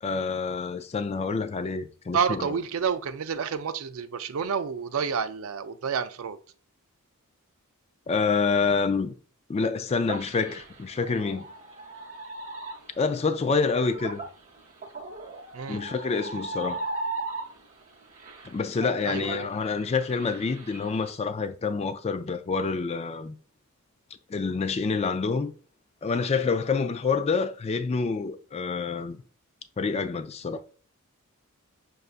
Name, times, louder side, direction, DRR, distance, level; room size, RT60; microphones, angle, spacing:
voice 1, 0.0-2.5 8.1-9.1 9.5-11.4 13.0-14.2 15.7-16.8 18.4-23.3 24.3-25.5 26.0-29.2 29.8-30.6, left 4 dB, 30° left, 0.3 m, -27 dB
voice 2, 2.1-6.4 15.5-15.8 19.0-19.5, right 6 dB, 65° right, 0.4 m, -29 dB
sound 1, 10.1-17.8 18.1-21.1, right 2 dB, 35° right, 0.8 m, -37 dB
6.5 x 2.4 x 2.4 m
head